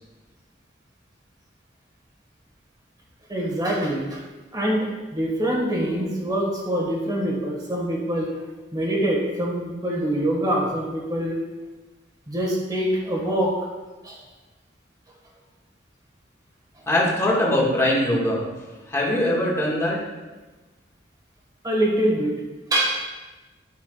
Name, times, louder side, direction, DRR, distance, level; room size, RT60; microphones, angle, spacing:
voice 1, 3.3-4.2 4.5-8.3 8.7-11.4 12.3-13.5 14.0-14.2 21.6-22.4 22.7-23.1, right 1 dB, 20° right, -2 dB, 1.7 m, -24 dB
voice 2, 16.9-18.5 18.9-20.0, left 1 dB, 15° left, -5 dB, 1.9 m, -21 dB
12.0 x 5.9 x 2.4 m, 1.2 s
head